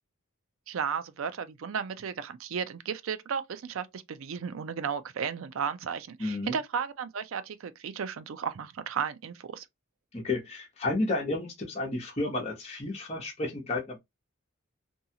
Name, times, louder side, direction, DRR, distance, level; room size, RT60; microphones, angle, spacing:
voice 1, 0.7-9.7, right 7 dB, 70° right, 0.4 m, -34 dB
voice 2, 6.2-6.5 10.1-14.0, left 2 dB, 30° left, 1.0 m, -31 dB
2.7 x 2.3 x 2.7 m
head